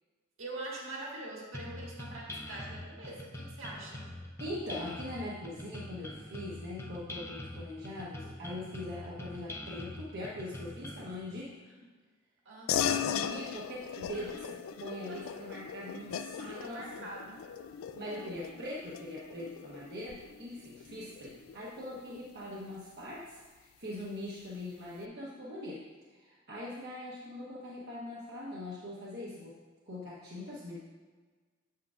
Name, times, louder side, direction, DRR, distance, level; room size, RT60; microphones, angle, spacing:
voice 1, 0.4-4.1 11.6-11.9 12.5-13.1 14.1-14.3 15.1-15.4 16.5-17.5 18.0-18.3, right 2 dB, 70° right, -3 dB, 1.9 m, -44 dB
sound 1, 1.5-11.1, left 1 dB, 10° left, 0.6 m, -44 dB
voice 2, 4.4-11.5 12.8-17.1 17.9-25.8 26.1-29.6 29.9-30.8, left 1 dB, 55° right, -6 dB, 1.0 m, -42 dB
sound 2, 12.7-22.6, left 9 dB, 80° left, 0.3 m, -38 dB
8.1 x 7.4 x 2.4 m, 1.4 s
head